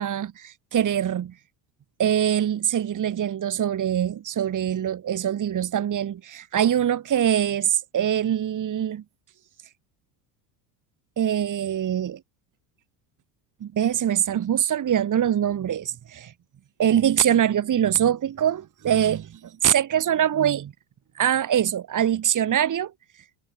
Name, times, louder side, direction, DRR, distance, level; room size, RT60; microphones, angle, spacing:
voice 1, 0.0-1.3 2.0-9.0 11.2-12.2 13.6-16.3 16.8-20.7 21.1-22.9, right 10 dB, 40° right, 3.5 m, -23 dB
supercardioid pair, 95°, 48 cm